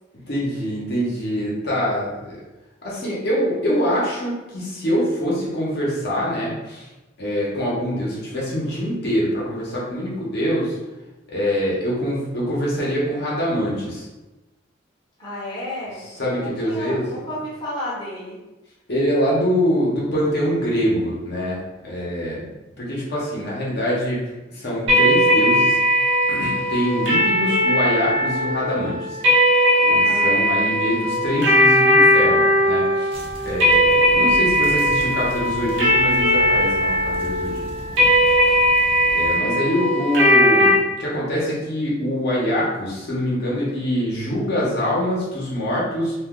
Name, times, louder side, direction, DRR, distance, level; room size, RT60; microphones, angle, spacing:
voice 1, 0.3-2.4 2.8-6.9 7.2-10.7 11.3-14.1 16.2-17.2 18.9-22.5 22.8-24.2 24.5-25.8 26.3-29.2 29.8-33.1 33.4-37.7 37.9-38.0 39.1-40.7 41.0-46.1, equal, 60° left, -6 dB, 0.9 m, -24 dB
voice 2, 15.2-18.4 29.9-30.4, left 1 dB, 25° left, -8 dB, 0.8 m, -32 dB
sound 1, 24.9-40.7, equal, 75° right, 0.8 m, -18 dB
sound 2, 33.1-39.4, equal, 30° right, 0.6 m, -37 dB
2.5 x 2.2 x 3.6 m, 1.1 s
head